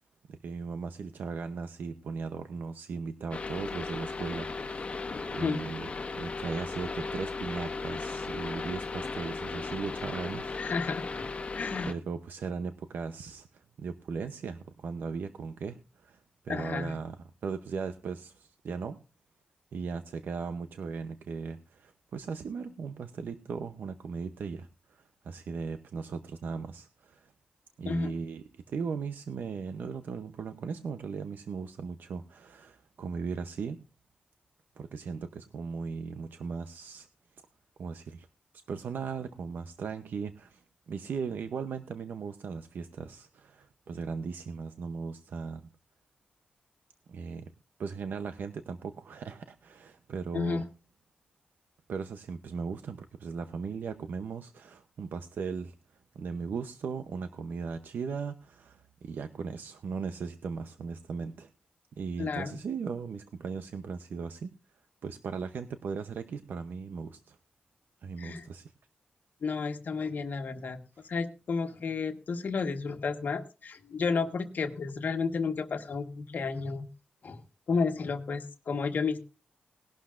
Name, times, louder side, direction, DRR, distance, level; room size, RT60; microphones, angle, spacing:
voice 1, 0.3-4.9 5.3-10.6 11.8-17.2 17.4-19.0 19.7-27.3 27.8-33.8 34.8-37.1 37.8-38.3 38.7-45.7 47.1-47.5 47.8-50.7 51.9-55.7 56.1-61.5 62.0-64.5 65.0-67.4 68.0-68.7 71.0-71.1, right 5 dB, 80° right, 9 dB, 0.7 m, -38 dB
sound 1, 3.3-11.9, left 4 dB, 40° left, 1.3 m, -36 dB
voice 2, 10.6-11.3 11.5-11.9 16.5-16.9 27.8-28.1 50.3-50.6 62.2-62.6 68.2-68.4 69.4-70.8 71.0-76.9 77.2-77.4 77.7-79.2, left 4 dB, 65° left, 7 dB, 1.3 m, -32 dB
19.5 x 11.5 x 2.5 m, 0.33 s
wide cardioid pair, 110°, 3 cm